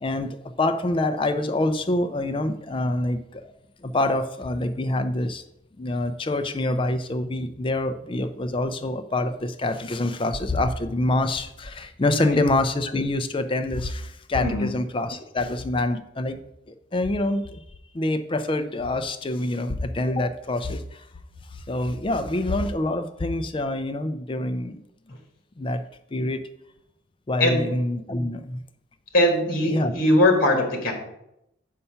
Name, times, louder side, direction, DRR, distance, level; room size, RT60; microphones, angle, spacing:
voice 1, 0.0-3.5 3.8-5.4 5.8-16.4 16.7-17.6 17.9-21.1 21.5-24.8 25.6-25.8 26.1-26.4 27.3-28.6 29.7-29.9, left 2 dB, 25° left, 9 dB, 0.4 m, -26 dB
voice 2, 14.4-14.8 25.1-25.2 27.4-27.6 29.1-30.9, left 1 dB, 45° left, 2 dB, 1.6 m, -21 dB
6.9 x 5.6 x 5.5 m, 0.82 s
head